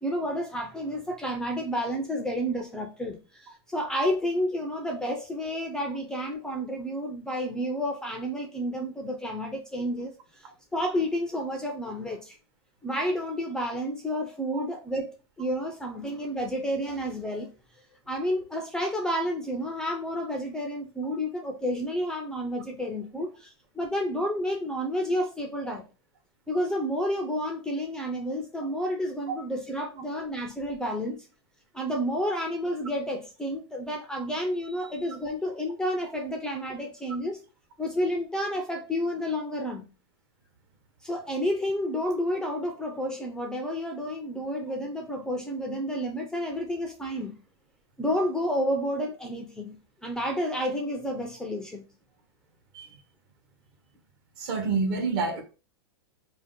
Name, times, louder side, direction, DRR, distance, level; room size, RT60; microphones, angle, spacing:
voice 1, 0.0-10.5 10.7-12.4 12.8-17.5 18.1-25.8 26.5-31.3 31.7-37.4 37.8-39.9 41.0-47.4 48.0-49.8 50.0-51.9, equal, 5° left, 0.3 m, -30 dB
voice 2, 54.4-55.4, right 4 dB, 55° right, 0.9 m, -27 dB
2.6 x 2.0 x 3.6 m
hypercardioid pair, 135°, 14 cm